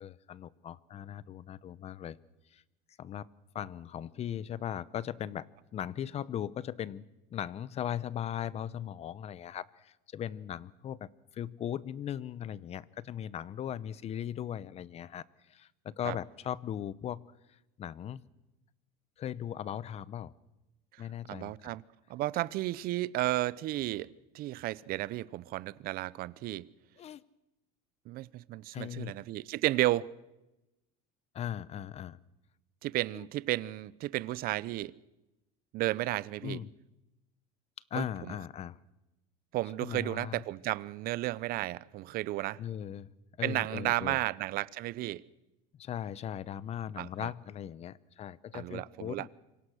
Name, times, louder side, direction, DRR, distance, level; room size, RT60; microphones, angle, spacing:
voice 1, 0.0-2.2 2.5-2.6 3.0-3.3 3.5-7.0 7.3-17.2 17.8-18.2 19.2-20.3 21.0-21.7 27.0-27.2 28.7-29.1 31.3-32.2 36.4-36.7 37.9-38.8 39.8-40.4 42.6-43.1 43.4-44.2 45.8-49.3, left 10 dB, 35° left, 0.8 m, -38 dB
voice 2, 20.9-21.8 22.1-26.7 28.1-30.1 32.8-34.9 35.7-36.6 37.9-38.4 39.5-42.6 43.4-45.2 47.0-47.3 48.5-49.3, right 17 dB, 50° right, 0.7 m, -33 dB
26.5 x 24.5 x 6.4 m
supercardioid pair, 130°, 19 cm